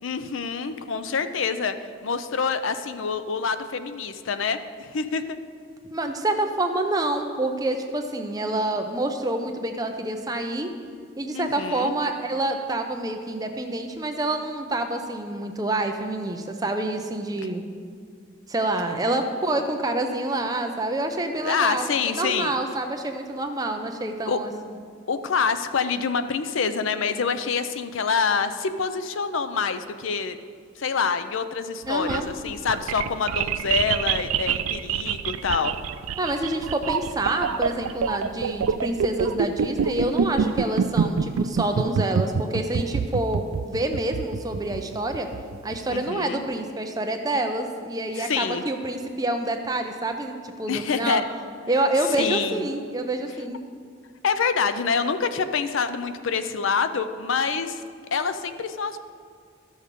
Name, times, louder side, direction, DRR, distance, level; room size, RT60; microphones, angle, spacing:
voice 1, 0.0-1.7 2.0-5.4 11.3-11.9 21.4-22.5 24.3-24.4 25.1-30.4 30.8-35.7 45.9-46.4 48.2-48.6 50.7-51.2 52.2-52.7 54.2-57.8 58.1-59.0, left 5 dB, 70° left, 10 dB, 0.5 m, -26 dB
voice 2, 5.9-10.7 11.2-17.6 18.5-24.5 31.8-32.3 36.2-45.3 45.6-51.2 51.7-53.6, right 2 dB, 20° right, 4 dB, 0.6 m, -27 dB
sound 1, 31.9-46.0, right 6 dB, 90° right, 0.4 m, -26 dB
13.0 x 6.5 x 5.2 m, 2.2 s
head